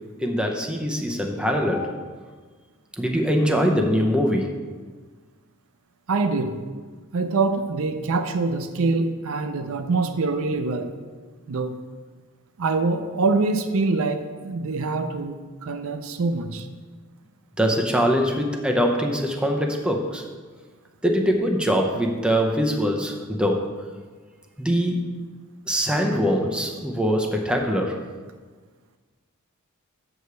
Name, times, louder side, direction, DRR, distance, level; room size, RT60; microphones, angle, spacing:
voice 1, 0.2-1.9 3.0-4.5 17.6-20.2 21.0-23.7 24.6-25.0 25.7-28.0, equal, 5° right, 1 dB, 0.7 m, -23 dB
voice 2, 6.1-6.6 7.1-10.9 11.5-11.7 12.6-15.4 15.6-16.6, right 3 dB, 70° right, 8 dB, 0.5 m, -24 dB
6.3 x 4.9 x 6.7 m, 1.4 s
head